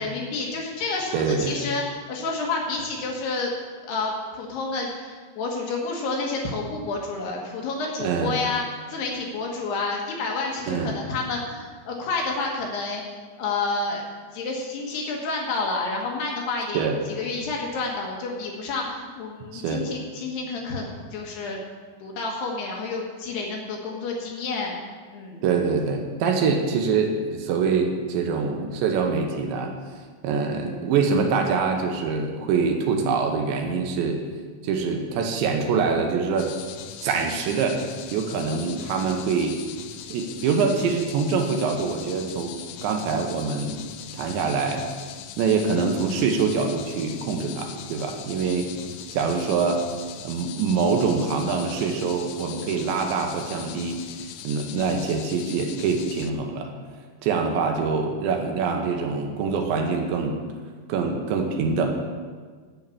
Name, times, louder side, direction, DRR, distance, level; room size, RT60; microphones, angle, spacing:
voice 1, 0.0-3.5 3.9-13.0 13.4-14.0 14.3-21.6 22.0-24.8 25.1-25.4, left 3 dB, 70° left, 0 dB, 3.1 m, -29 dB
voice 2, 1.1-1.6 8.0-8.4 10.7-10.9 16.7-17.0 19.5-19.9 25.4-29.7 30.2-34.2 34.6-36.5 37.0-37.8 38.1-39.6 40.1-42.5 42.8-43.8 44.1-44.9 45.4-48.7 49.1-49.8 50.2-54.0 54.4-56.7 57.2-60.4 60.9-62.0, right 5 dB, 75° right, 3 dB, 3.1 m, -24 dB
sound 1, 36.4-56.3, left 10 dB, 85° left, 2.9 m, -40 dB
10.5 x 6.4 x 8.4 m, 1.5 s
omnidirectional pair, 5.5 m